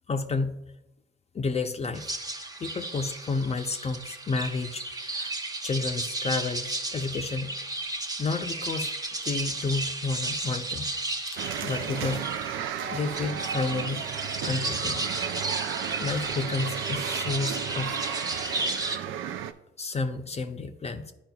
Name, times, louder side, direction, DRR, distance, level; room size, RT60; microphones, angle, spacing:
voice 1, 0.1-0.6 1.3-2.1 2.6-5.3 5.6-7.5 8.2-8.9 9.2-10.9 11.6-12.2 12.9-14.0 14.4-15.0 16.0-17.9 19.2-19.3 19.8-21.1, left 4 dB, 30° left, 7 dB, 0.5 m, -31 dB
sound 1, 1.9-19.0, right 2 dB, 20° right, 0.8 m, -33 dB
sound 2, 11.4-19.5, right 9 dB, 85° right, 0.4 m, -34 dB
10.5 x 4.9 x 2.3 m, 0.89 s
cardioid pair, 90°, 20 cm